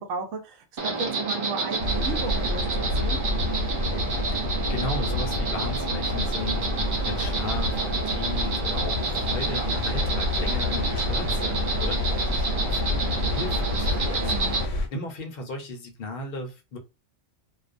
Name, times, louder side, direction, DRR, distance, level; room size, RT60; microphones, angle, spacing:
voice 1, 0.0-3.2 14.2-14.6, right 4 dB, 80° right, 0.9 m, -34 dB
Insect, 0.8-14.6, right 3 dB, 60° right, 0.5 m, -29 dB
sound 1, 1.8-14.9, left 2 dB, 80° left, 0.9 m, -28 dB
voice 2, 4.3-16.8, left 2 dB, 55° left, 0.7 m, -36 dB
2.4 x 2.1 x 2.4 m
omnidirectional pair, 1.3 m